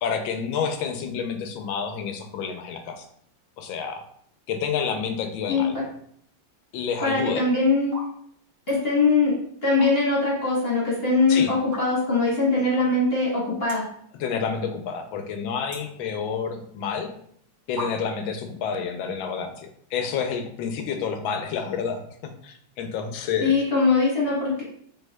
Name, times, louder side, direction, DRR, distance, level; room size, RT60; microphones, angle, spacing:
voice 1, 0.0-3.1 3.6-4.0 4.5-5.7 6.7-7.4 11.3-11.5 14.2-17.1 17.7-23.6, left 6 dB, 85° left, 6 dB, 1.4 m, -29 dB
voice 2, 7.0-8.0 8.7-13.9 23.4-24.6, left 3 dB, 35° left, -5 dB, 1.2 m, -22 dB
sound 1, 7.9-8.1 8.4-8.8 9.5-10.3 10.6-10.7 11.6-12.2 12.7-12.8 13.0-13.1 13.6-14.0 14.4-14.9 15.2-16.6 17.3-17.4 17.8-18.3, equal, 75° right, 2.3 m, -38 dB
5.4 x 3.3 x 2.2 m, 0.65 s
omnidirectional pair, 2.1 m